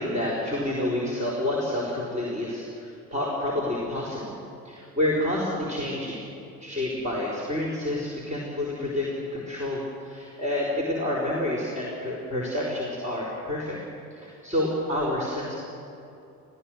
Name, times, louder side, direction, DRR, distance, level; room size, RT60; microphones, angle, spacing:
voice 1, 0.0-4.4 4.6-6.2 6.6-13.8 14.1-15.6, left 1 dB, 15° right, -3 dB, 4.9 m, -29 dB
29.5 x 17.0 x 6.6 m, 2.7 s
figure-of-eight pair, 65°, 47 cm